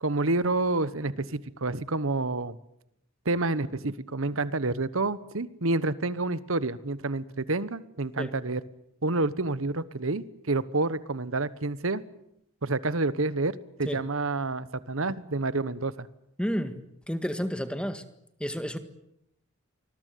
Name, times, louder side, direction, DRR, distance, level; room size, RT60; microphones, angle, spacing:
voice 1, 0.0-2.6 3.2-8.6 9.0-12.0 12.6-16.1, right 2 dB, 70° right, 16 dB, 1.2 m, -28 dB
voice 2, 16.4-16.8 17.1-18.0 18.4-18.8, equal, 5° left, 10 dB, 1.7 m, -30 dB
26.0 x 21.0 x 9.4 m, 0.79 s
head